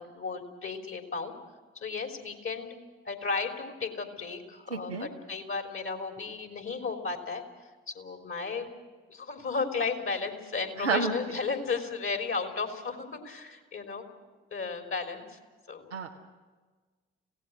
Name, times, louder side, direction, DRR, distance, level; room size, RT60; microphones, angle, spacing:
voice 1, 0.0-1.3 1.8-2.7 3.1-7.4 7.9-8.7 9.1-14.0 14.5-15.4 15.7-16.0, left 4 dB, 40° left, 5 dB, 3.4 m, -34 dB
voice 2, 4.7-5.1 10.8-11.1 15.9-16.2, right 5 dB, 90° right, -3 dB, 1.0 m, -30 dB
26.0 x 17.5 x 6.3 m, 1.4 s
figure-of-eight pair, 40°, 33 cm